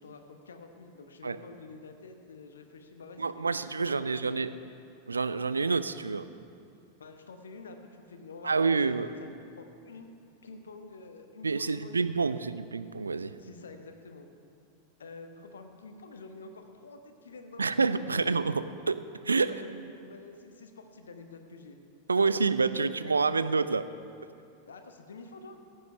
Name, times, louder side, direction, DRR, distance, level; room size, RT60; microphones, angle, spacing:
voice 1, 0.0-4.1 4.4-4.6 7.0-9.3 9.6-12.4 13.4-14.3 15.0-18.3 19.3-21.8 22.2-23.7 24.7-25.6, left 3 dB, 70° left, 6 dB, 1.0 m, -48 dB
voice 2, 3.2-4.5 5.1-6.2 8.4-9.1 11.4-13.3 17.6-19.0 19.2-19.6 22.1-23.8, right 4 dB, 75° right, 13 dB, 0.4 m, -28 dB
14.5 x 7.7 x 5.6 m, 2.5 s
figure-of-eight pair, 90°, 0 cm